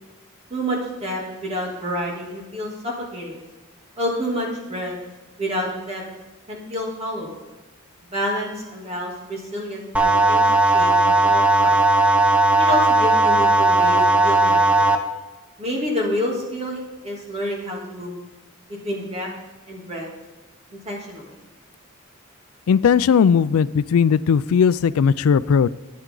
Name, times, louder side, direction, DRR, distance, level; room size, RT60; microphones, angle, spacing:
voice 1, 0.5-3.4 4.0-5.0 5.4-6.0 6.5-7.4 8.1-11.7 12.6-14.8 15.6-18.1 18.7-19.3 19.7-20.1 20.7-21.4, equal, 30° right, -2 dB, 2.7 m, -28 dB
sound 1, 9.9-14.9, right 2 dB, 5° right, 0.7 m, -16 dB
voice 2, 22.7-25.7, left 6 dB, 85° left, 17 dB, 0.3 m, -17 dB
13.5 x 9.4 x 3.8 m, 1.1 s
head